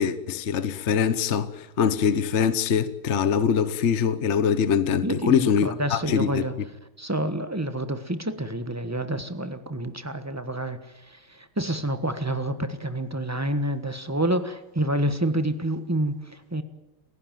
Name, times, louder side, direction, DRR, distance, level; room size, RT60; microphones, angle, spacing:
voice 1, 0.0-6.4, left 7 dB, 45° left, 0.9 m, -23 dB
voice 2, 5.0-6.6 7.0-16.6, right 1 dB, 10° right, 1.0 m, -28 dB
29.5 x 15.5 x 9.2 m
omnidirectional pair, 2.3 m